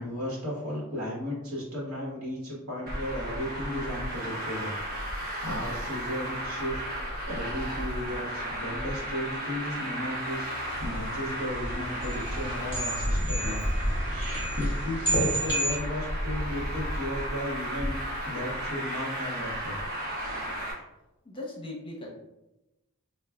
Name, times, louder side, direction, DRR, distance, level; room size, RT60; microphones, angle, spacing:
voice 1, 0.0-6.8 7.3-10.5 10.8-13.6 14.0-18.0 18.2-19.8, left 1 dB, 75° right, -5 dB, 1.3 m, -35 dB
Traffic noise roadway noise, 2.9-20.7, equal, 45° right, 0.8 m, -33 dB
sound 1, 10.7-15.8, right 1 dB, 10° right, 1.5 m, -32 dB
voice 2, 21.2-22.1, left 2 dB, 25° left, -2 dB, 0.7 m, -38 dB
4.5 x 2.4 x 2.3 m, 0.95 s
head